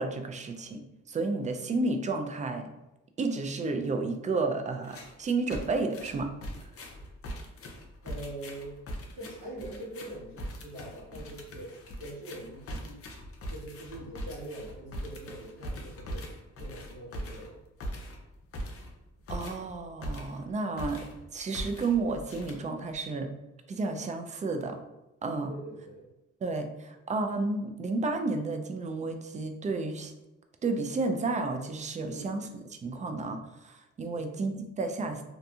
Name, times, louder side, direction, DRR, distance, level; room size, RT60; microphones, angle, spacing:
voice 1, 0.0-2.7 3.2-6.3 19.3-21.0 21.3-23.3 23.7-24.8 25.2-25.5 26.4-30.1 30.6-32.5 32.8-35.2, right 3 dB, 25° right, 6 dB, 0.3 m, -31 dB
sound 1, 4.8-5.2 5.5-20.5 20.8-21.2 21.5-23.0, equal, 50° left, 0.6 m, -41 dB
voice 2, 8.0-8.8 9.1-13.0 13.5-16.3 16.6-17.6 25.5-26.1 32.1-32.3 34.1-34.3, right 1 dB, 55° right, -9 dB, 1.1 m, -43 dB
2.6 x 2.6 x 2.3 m, 0.96 s
cardioid pair, 90°, 30 cm